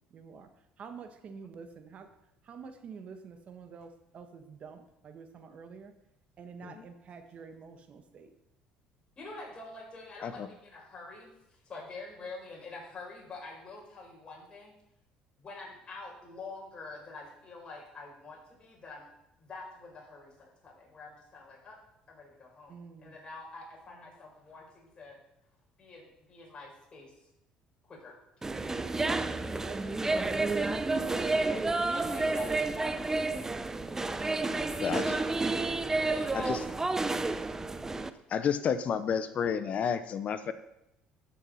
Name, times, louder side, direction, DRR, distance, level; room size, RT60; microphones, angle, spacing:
voice 1, 0.1-0.5 0.8-2.1 2.4-5.9 6.4-8.3 22.7-23.1 29.6-30.0 30.4-31.2, right 5 dB, 50° right, 7 dB, 1.5 m, -48 dB
voice 2, 9.2-14.7 15.4-19.1 19.4-21.8 22.1-25.2 25.8-27.3 27.9-29.0 31.9-33.5 34.5-35.3 35.9-36.8 38.0-38.2, left 3 dB, 35° left, -2 dB, 4.7 m, -47 dB
sound 1, 28.4-38.1, right 3 dB, 15° right, 0.7 m, -30 dB
voice 3, 34.8-35.1 36.3-36.6 38.3-40.5, left 7 dB, 50° left, 12 dB, 0.8 m, -30 dB
13.0 x 6.4 x 5.6 m, 0.85 s
supercardioid pair, 85°, 3 cm